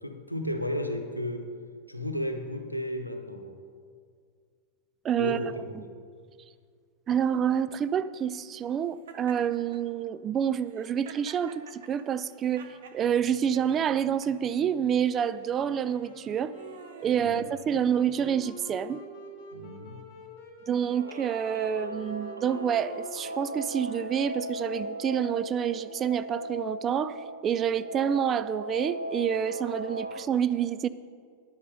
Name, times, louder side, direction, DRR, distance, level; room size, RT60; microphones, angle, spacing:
voice 1, 0.0-1.5 1.9-3.5 5.2-6.0 17.2-17.5 19.5-20.1, equal, 90° left, 5 dB, 0.9 m, -34 dB
voice 2, 5.0-5.4 7.1-12.7 12.9-16.5 17.0-19.0 20.7-27.2 27.4-30.9, right 8 dB, 25° right, 14 dB, 0.3 m, -28 dB
Laughter, 9.1-9.8 10.6-13.0 13.5-14.3 15.0-15.3 16.1-18.3, right 7 dB, 60° right, 1.0 m, -48 dB
Wind instrument woodwind instrument, 15.3-26.4, left 1 dB, 35° left, 2.4 m, -48 dB
Guitar, 20.8-30.2, right 1 dB, 85° right, 0.6 m, -37 dB
10.5 x 8.2 x 5.4 m, 2.1 s
figure-of-eight pair, 90°, 0 cm